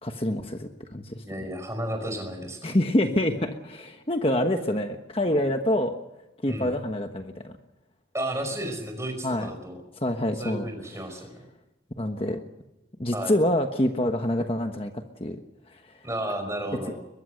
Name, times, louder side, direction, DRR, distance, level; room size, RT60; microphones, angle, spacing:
voice 1, 0.0-1.5 2.6-5.9 6.4-7.5 9.2-9.5 10.0-10.7 12.0-12.4 13.0-15.4 15.7-15.9, left 1 dB, 30° left, 5 dB, 1.3 m, -26 dB
voice 2, 1.2-2.8 6.5-6.7 8.1-9.8 10.4-11.3 13.1-13.3 16.0-17.0, right 1 dB, 15° right, 5 dB, 5.3 m, -33 dB
22.5 x 21.0 x 6.6 m, 0.93 s
head